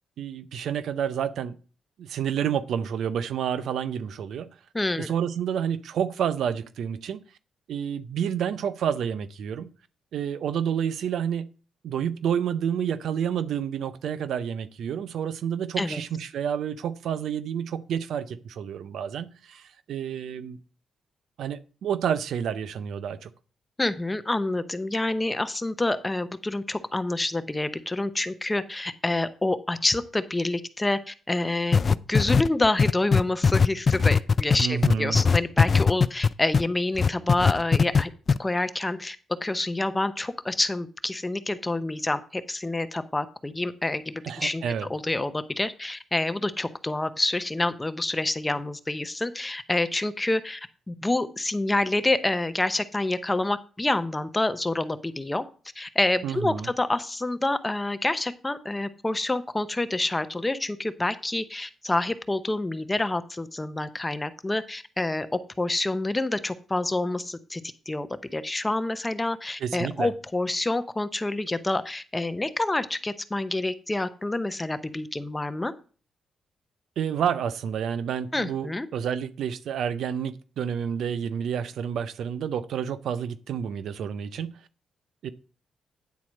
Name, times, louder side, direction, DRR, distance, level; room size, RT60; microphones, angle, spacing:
voice 1, 0.2-1.6 2.0-4.5 5.0-7.2 7.7-9.7 10.1-11.5 11.8-20.6 21.4-23.3 34.6-35.2 44.2-44.9 56.2-56.7 69.6-70.1 77.0-84.5 85.2-85.3, right 8 dB, 75° right, 14 dB, 0.6 m, -29 dB
voice 2, 4.7-5.1 15.8-16.0 23.8-31.8 32.1-38.1 38.4-44.6 44.9-55.4 55.8-65.3 65.6-68.1 68.3-75.7 78.3-78.9, left 2 dB, 15° left, 12 dB, 0.7 m, -27 dB
sound 1, 31.7-36.7 37.0-38.0 38.3-38.4, left 5 dB, 45° left, 0.3 m, -19 dB
9.4 x 4.2 x 6.3 m, 0.38 s
cardioid pair, 85°, 0 cm